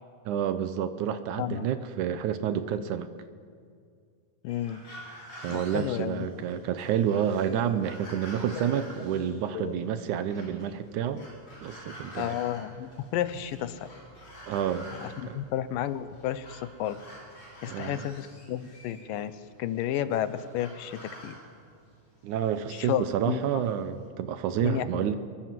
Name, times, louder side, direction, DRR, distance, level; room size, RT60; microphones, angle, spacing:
voice 1, 0.3-3.1 5.4-11.2 11.6-12.4 14.5-14.9 15.3-15.4 17.7-18.1 22.2-25.2, right 9 dB, 70° right, 11 dB, 2.2 m, -29 dB
voice 2, 4.4-4.8 5.5-6.3 8.7-8.8 9.5-9.8 12.2-13.9 14.9-17.0 17.6-21.4 22.7-23.6 24.6-25.1, left 11 dB, 85° left, 13 dB, 2.6 m, -32 dB
sound 1, 4.5-24.1, equal, 35° left, 5.7 m, -49 dB
25.0 x 22.5 x 7.6 m, 2.2 s
omnidirectional pair, 3.9 m